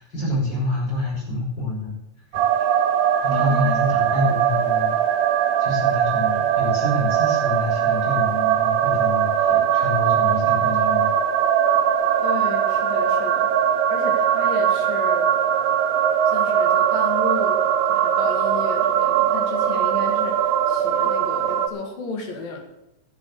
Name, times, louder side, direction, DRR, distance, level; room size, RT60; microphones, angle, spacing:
voice 1, 0.0-1.9 3.2-4.9 5.6-11.1, left 1 dB, 30° left, -5 dB, 5.8 m, -27 dB
sound 1, 2.3-21.7, right 9 dB, 85° right, 2.6 m, -20 dB
voice 2, 3.3-3.8 12.2-13.5 13.9-15.3 16.3-22.6, left 4 dB, 75° left, 2 dB, 3.9 m, -33 dB
11.5 x 7.8 x 8.2 m, 0.89 s
omnidirectional pair, 4.0 m